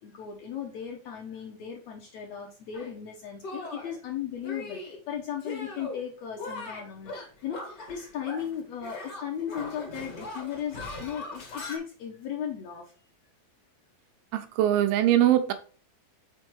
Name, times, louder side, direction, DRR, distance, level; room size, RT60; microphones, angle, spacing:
voice 1, 0.0-7.1 7.4-13.1, left 8 dB, 70° left, 1.7 m, -36 dB
Shatter, 2.7-2.9 3.4-4.0 4.4-5.0 5.4-6.0 6.3-8.5 8.8-11.8, left 2 dB, 55° left, 1.0 m, -40 dB
voice 2, 14.3-15.5, right 12 dB, 90° right, 2.5 m, -22 dB
6.2 x 4.4 x 4.5 m
omnidirectional pair, 4.0 m